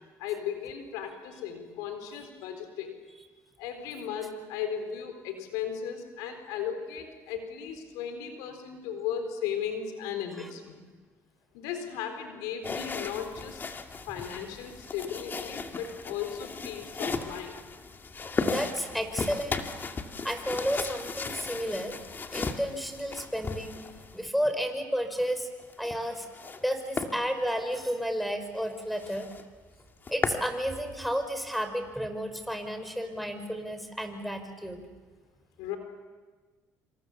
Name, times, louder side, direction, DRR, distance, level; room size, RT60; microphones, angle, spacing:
voice 1, 0.2-3.0 3.6-10.9 11.5-13.6 14.1-17.6 35.6-35.8, left 8 dB, 90° left, 7 dB, 4.1 m, -36 dB
sound 1, 12.6-24.3 25.6-26.6 27.0-27.1 27.6-27.8 28.2-28.3 28.6-28.7 29.0-29.4 29.8-30.5, left 4 dB, 35° left, 2.4 m, -36 dB
voice 2, 18.5-19.6 20.2-21.9 22.3-23.8 24.1-25.5 25.8-26.3 26.6-29.3 30.1-34.9, equal, ahead, 8 dB, 5.3 m, -32 dB
27.0 x 26.0 x 7.3 m, 1.3 s
supercardioid pair, 80°, 6 cm